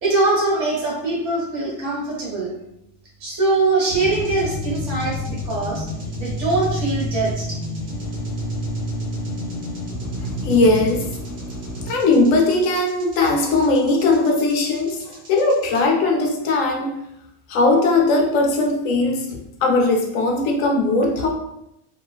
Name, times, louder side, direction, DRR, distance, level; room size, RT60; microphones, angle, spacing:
voice 1, 0.0-2.5 3.2-5.8 6.2-7.6, right 3 dB, 65° right, -5 dB, 1.3 m, -22 dB
sound 1, 3.9-15.8, left 1 dB, 50° right, 0.8 m, -29 dB
voice 2, 10.4-11.1 11.9-15.0 15.3-16.9 17.5-21.3, left 2 dB, 85° left, 1 dB, 1.0 m, -19 dB
3.0 x 2.3 x 2.2 m, 0.81 s
omnidirectional pair, 1.3 m